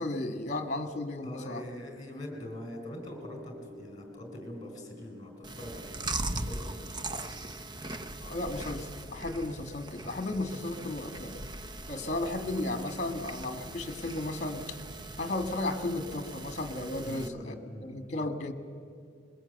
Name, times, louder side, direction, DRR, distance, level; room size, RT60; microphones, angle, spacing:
voice 1, 0.0-1.7 8.2-11.4 11.9-14.8 15.2-17.6 17.8-18.5, left 2 dB, 40° left, 9 dB, 1.6 m, -34 dB
voice 2, 1.2-6.1 6.4-7.0 17.0-18.3, left 1 dB, 20° left, 4 dB, 4.2 m, -43 dB
sound 1, 3.0-11.4 11.7-11.8, left 2 dB, 65° right, 4.7 m, -54 dB
Chewing mastication, 5.4-17.3, right 2 dB, 25° right, 0.7 m, -40 dB
21.5 x 21.5 x 7.9 m, 2.3 s
head